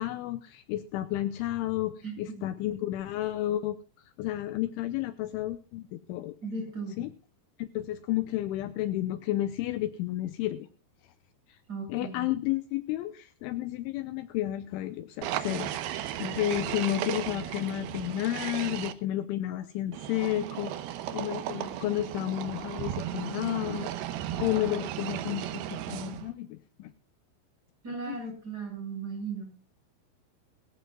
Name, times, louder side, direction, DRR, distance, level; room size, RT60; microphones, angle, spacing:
voice 1, 0.0-3.8 4.2-6.3 7.0-7.1 7.6-10.7 11.5-11.6 11.9-15.7 16.2-20.7 21.1-23.9 24.4-26.9 27.9-28.2, left 14 dB, 80° left, 12 dB, 3.0 m, -31 dB
voice 2, 2.0-2.4 6.4-7.0 11.7-12.3 27.8-29.5, right 4 dB, 20° right, 1 dB, 7.4 m, -37 dB
sound 1, 15.2-18.9 19.9-26.3, right 11 dB, 85° right, 2.1 m, -35 dB
21.0 x 15.0 x 2.3 m, 0.35 s
omnidirectional pair, 5.8 m